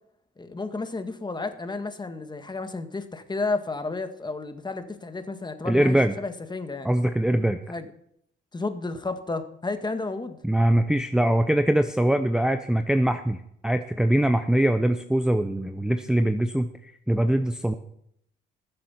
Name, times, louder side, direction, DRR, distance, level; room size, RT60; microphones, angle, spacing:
voice 1, 0.4-6.9 7.7-7.9 8.5-10.4, left 3 dB, 20° left, 8 dB, 1.6 m, -32 dB
voice 2, 5.6-6.1 6.8-7.6 10.4-17.7, right 1 dB, 5° right, 8 dB, 0.8 m, -22 dB
20.0 x 7.6 x 5.7 m, 0.72 s
cardioid pair, 90°, 20 cm